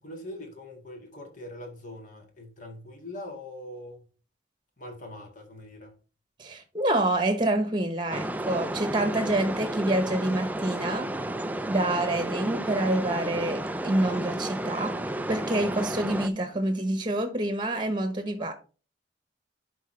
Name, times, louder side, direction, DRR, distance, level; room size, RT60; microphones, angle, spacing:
voice 1, 0.0-4.0 4.8-5.9, left 1 dB, 45° left, 2.0 m, -42 dB
voice 2, 6.4-11.1 11.7-15.0 15.3-18.5, right 1 dB, 25° right, 1.1 m, -27 dB
sound 1, 8.1-16.3, right 1 dB, 10° right, 0.4 m, -32 dB
11.0 x 4.6 x 3.3 m
head